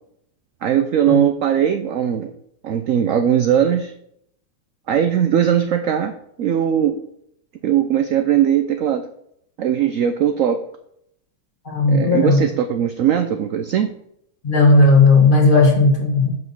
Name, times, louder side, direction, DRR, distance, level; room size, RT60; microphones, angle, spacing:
voice 1, 0.6-2.3 2.6-3.9 4.9-7.0 7.6-9.0 9.6-10.6 11.9-13.9, right 9 dB, 75° right, 7 dB, 0.7 m, -19 dB
voice 2, 11.6-12.4 14.4-16.3, left 3 dB, 30° left, 1 dB, 1.7 m, -14 dB
6.0 x 5.4 x 6.9 m, 0.72 s
omnidirectional pair, 2.0 m